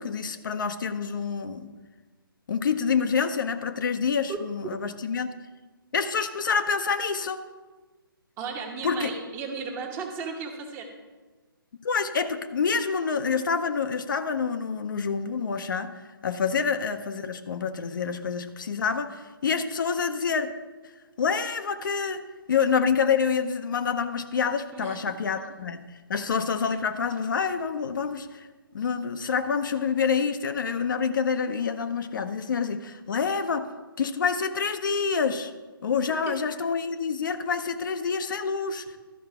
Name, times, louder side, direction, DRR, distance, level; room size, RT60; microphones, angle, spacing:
voice 1, 0.0-1.7 2.5-5.3 5.9-7.4 8.8-9.1 11.8-15.9 16.2-20.5 21.2-22.2 22.5-25.8 26.1-28.5 28.7-33.7 34.0-35.5 35.8-39.0, left 6 dB, 60° left, 8 dB, 0.7 m, -27 dB
voice 2, 8.4-10.9 16.6-16.7 24.7-25.1 26.1-26.2 36.1-36.4, right 5 dB, 20° right, 3 dB, 1.0 m, -35 dB
12.5 x 5.4 x 4.9 m, 1.3 s
figure-of-eight pair, 140°, 12 cm